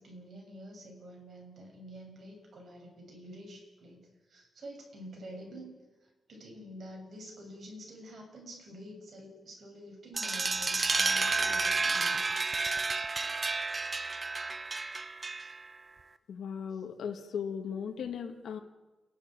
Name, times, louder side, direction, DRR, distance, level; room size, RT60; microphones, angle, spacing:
voice 1, 0.0-5.7 6.0-12.2 16.7-16.8, equal, 55° right, 0 dB, 7.1 m, -48 dB
sound 1, 10.2-15.7, right 3 dB, 25° right, 0.8 m, -31 dB
voice 2, 16.3-18.6, left 7 dB, 90° left, 4 dB, 1.8 m, -37 dB
29.0 x 11.5 x 8.9 m, 1.2 s
wide cardioid pair, 145°, 0 cm